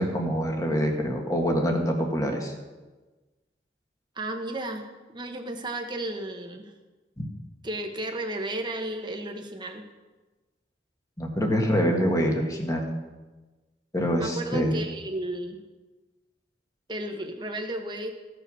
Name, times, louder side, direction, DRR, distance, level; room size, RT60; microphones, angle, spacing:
voice 1, 0.0-2.5 11.2-12.9 13.9-14.8, equal, 20° left, 2 dB, 1.7 m, -25 dB
voice 2, 4.1-6.7 7.6-9.8 14.1-15.6 16.9-18.1, right 1 dB, 25° right, 4 dB, 1.2 m, -33 dB
15.5 x 6.8 x 6.4 m, 1.2 s
head